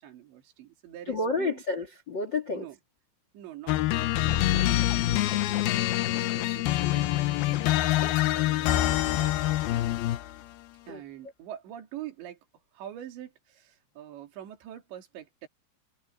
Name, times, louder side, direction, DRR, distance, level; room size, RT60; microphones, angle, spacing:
voice 1, 0.0-1.6 2.5-2.8 3.3-7.7 8.3-9.8 10.9-12.4 12.7-15.5, right 12 dB, 70° right, 5.0 m, -45 dB
voice 2, 1.1-2.6 8.0-8.5 10.9-11.0, left 3 dB, 50° left, 1.3 m, -31 dB
sound 1, 3.7-10.4, left 15 dB, 75° left, 2.3 m, -25 dB
omnidirectional pair, 5.5 m